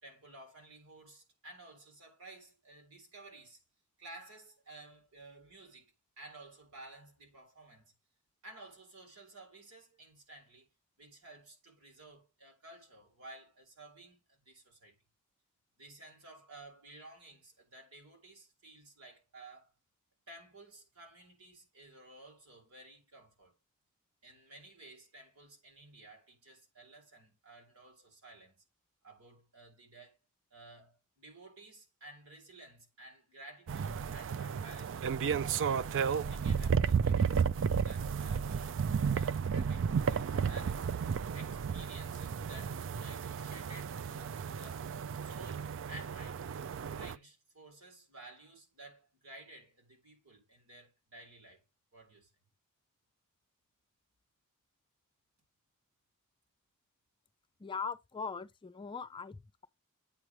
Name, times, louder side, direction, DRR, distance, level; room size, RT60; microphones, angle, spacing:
voice 1, 0.0-3.6 4.0-7.9 8.4-10.7 11.0-14.9 15.8-19.7 20.3-23.6 24.2-28.6 29.0-30.2 30.5-35.2 36.0-40.8 41.3-44.9 45.2-46.5 46.9-51.6 51.9-52.3, right 2 dB, 85° right, 3.5 m, -54 dB
sound 1, 33.7-47.1, right 6 dB, 60° right, 0.4 m, -33 dB
voice 2, 57.6-59.7, left 5 dB, 20° left, 0.4 m, -40 dB
8.6 x 3.2 x 6.0 m
head